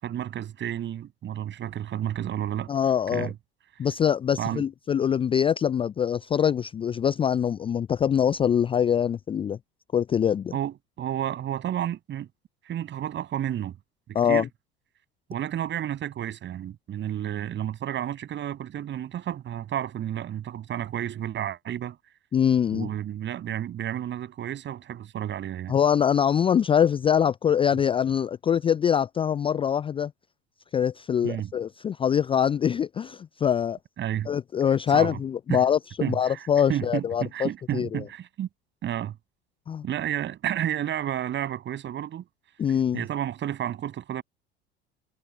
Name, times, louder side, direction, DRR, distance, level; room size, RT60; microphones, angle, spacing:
voice 1, 0.0-2.7 3.1-3.4 4.4-4.7 10.5-12.3 12.6-13.8 14.1-14.5 15.3-22.0 22.7-25.7 31.2-31.5 34.0-34.3 34.9-35.2 35.5-35.6 36.0-38.5 38.8-39.2 39.8-42.2 42.9-44.2, right 11 dB, 40° right, 7.6 m, -31 dB
voice 2, 2.7-3.3 3.8-9.6 9.9-10.5 14.1-14.5 22.3-22.9 25.7-30.1 30.7-33.8 34.3-38.0 39.7-39.8 42.6-43.0, left 8 dB, 20° left, 0.5 m, -24 dB
figure-of-eight pair, 70°, 30 cm